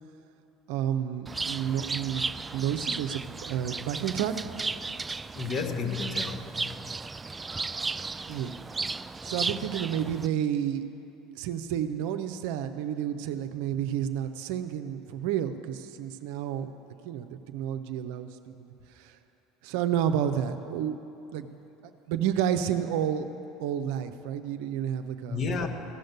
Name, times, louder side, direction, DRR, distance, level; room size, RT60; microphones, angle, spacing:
voice 1, 0.7-4.5 8.3-8.5 9.2-10.8 11.3-16.7 17.0-18.4 19.0-19.2 19.6-21.0 21.3-21.5 22.1-23.3 23.6-25.4, right 9 dB, 65° right, 8 dB, 0.7 m, -30 dB
Bird, 1.3-10.3, right 4 dB, 20° right, 0.3 m, -35 dB
voice 2, 5.3-7.0 25.3-25.7, left 4 dB, 45° left, 4 dB, 1.4 m, -32 dB
15.0 x 6.5 x 9.4 m, 2.9 s
hypercardioid pair, 75°, 0 cm